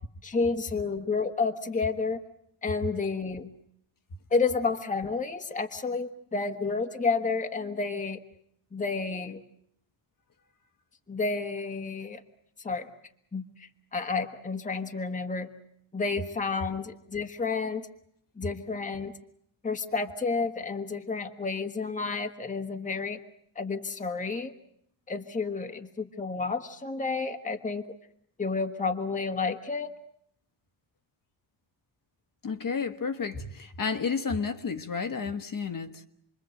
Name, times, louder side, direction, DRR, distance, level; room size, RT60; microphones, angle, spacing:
voice 1, 0.2-2.2 2.6-3.5 4.3-8.2 8.7-9.4 11.1-12.2 12.6-12.9 13.3-15.5 15.9-17.9 18.4-19.1 19.6-23.2 23.5-24.5 25.1-27.8 28.4-29.9, left 4 dB, 15° left, 1.3 m, -30 dB
voice 2, 32.4-36.1, left 5 dB, 45° left, 1.4 m, -31 dB
28.0 x 22.5 x 7.8 m
wide cardioid pair, 175°, 47 cm